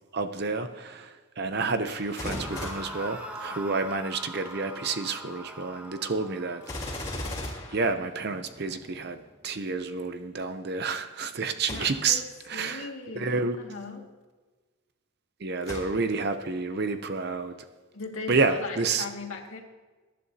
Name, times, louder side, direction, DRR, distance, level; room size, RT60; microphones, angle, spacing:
voice 1, 0.1-6.6 6.9-7.0 7.7-12.2 12.5-12.9 13.1-13.6 15.4-17.6 18.3-19.0, right 4 dB, 50° right, 9 dB, 0.6 m, -29 dB
Gunshot gunfire, 1.9-3.9 6.6-8.7 11.6-12.3 12.9-13.0 15.6-16.4 16.9-17.0, left 1 dB, 20° left, 3.1 m, -39 dB
sound 1, 2.2-9.3, equal, 5° right, 1.0 m, -42 dB
voice 2, 11.7-12.2 12.5-14.1 17.9-19.6, left 4 dB, 75° left, 0 dB, 2.0 m, -38 dB
22.0 x 11.0 x 2.8 m, 1.3 s
head